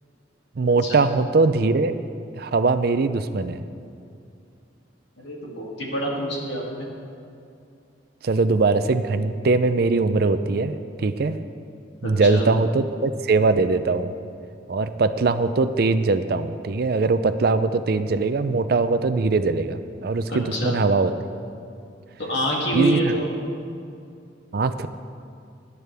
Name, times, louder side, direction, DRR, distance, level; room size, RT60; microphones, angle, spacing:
voice 1, 0.6-2.0 2.4-3.6 8.2-11.4 12.0-14.1 14.7-21.1 22.7-23.0 24.5-24.9, right 3 dB, 55° right, 11 dB, 0.5 m, -21 dB
voice 2, 5.2-6.9 12.0-12.5 20.3-20.8 22.2-23.3, right 1 dB, 70° left, -3 dB, 2.5 m, -26 dB
17.5 x 11.0 x 3.4 m, 2.5 s
head